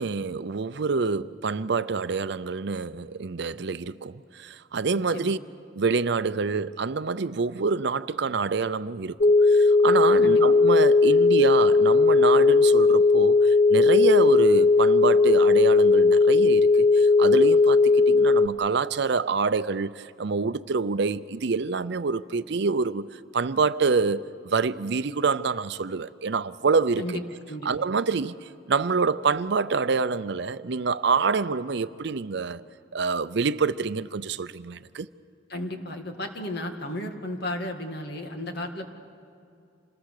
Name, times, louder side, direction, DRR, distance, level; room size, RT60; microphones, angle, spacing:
voice 1, 0.0-5.4 5.7-9.2 9.5-23.1 23.3-27.0 27.6-28.3 28.7-32.6 32.9-35.1, right 4 dB, 65° right, 0.6 m, -26 dB
sound 1, 9.2-18.5, left 3 dB, 40° left, 0.5 m, -18 dB
voice 2, 35.5-38.9, left 1 dB, 60° left, 2.0 m, -34 dB
27.0 x 20.0 x 6.6 m
head